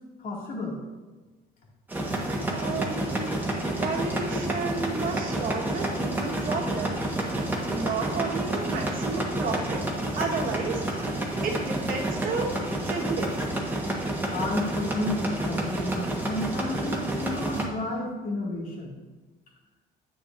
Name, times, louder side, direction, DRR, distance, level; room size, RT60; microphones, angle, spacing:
voice 1, 0.2-0.8 4.3-4.9 14.3-19.0, left 1 dB, 55° left, -3 dB, 2.4 m, -32 dB
sound 1, 1.9-17.7, right 1 dB, 10° right, 1.4 m, -29 dB
voice 2, 2.5-7.0 7.7-9.8 10.1-11.1 11.4-12.6 12.8-13.5, right 4 dB, 55° right, 0 dB, 1.5 m, -32 dB
9.6 x 8.0 x 2.6 m, 1.2 s
cardioid pair, 110°, 17 cm